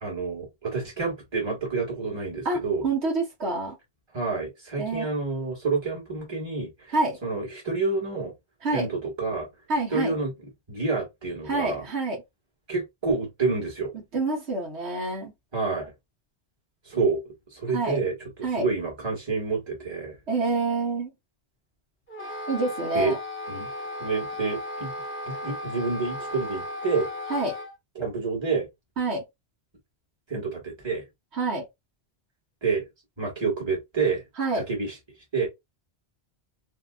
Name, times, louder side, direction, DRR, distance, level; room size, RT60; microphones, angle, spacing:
voice 1, 0.0-2.8 4.1-6.9 7.2-8.3 8.7-9.5 9.9-10.3 10.7-11.8 12.7-13.9 15.5-15.9 16.9-17.2 17.5-18.1 18.6-20.1 22.9-23.1 23.5-23.7 24.0-24.9 25.2-27.1 27.9-28.7 30.3-31.0 32.6-32.8 33.2-34.2 34.5-34.9 35.3-35.5, right 4 dB, 25° right, 1.4 m, -28 dB
voice 2, 2.4-3.7 4.8-5.1 6.9-7.2 8.6-8.9 9.7-10.2 11.4-12.2 13.9-15.3 17.7-18.0 18.4-18.7 20.3-21.1 22.5-23.2 27.3-27.5 29.0-29.2 31.3-31.6 34.4-34.7, right 3 dB, 80° right, 1.4 m, -27 dB
Wind instrument woodwind instrument, 22.1-27.7, left 1 dB, 10° left, 1.0 m, -35 dB
2.8 x 2.8 x 2.3 m
omnidirectional pair, 1.1 m